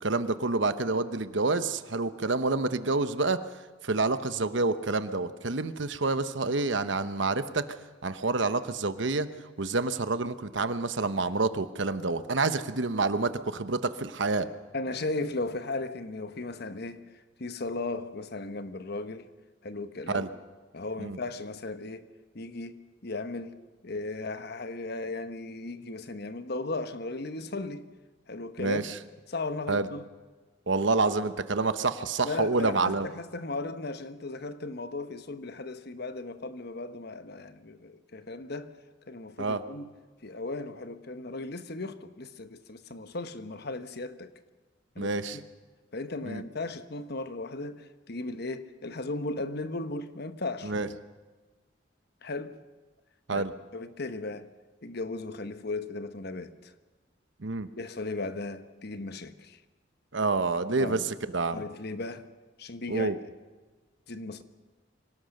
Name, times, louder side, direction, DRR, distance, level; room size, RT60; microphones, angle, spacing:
voice 1, 0.0-3.4 3.8-7.6 8.0-9.3 9.6-14.5 20.1-20.3 21.0-21.2 28.6-28.8 29.7-29.9 30.7-33.1 39.4-39.6 45.0-45.4 46.2-46.4 50.6-50.9 53.3-53.5 57.4-57.7 60.1-61.0 61.3-61.6 62.9-63.2, right 3 dB, 65° right, 1.0 m, -28 dB
voice 2, 14.7-19.3 19.6-20.2 20.7-23.6 23.8-27.9 28.3-28.9 29.3-30.1 32.2-38.7 39.1-39.9 40.2-44.3 44.9-45.4 45.9-50.7 52.2-52.6 53.3-54.5 54.8-56.7 57.8-59.6 60.8-61.1 61.5-62.3 62.6-63.1 64.1-64.4, left 2 dB, 55° left, 1.1 m, -36 dB
25.0 x 17.5 x 6.6 m
head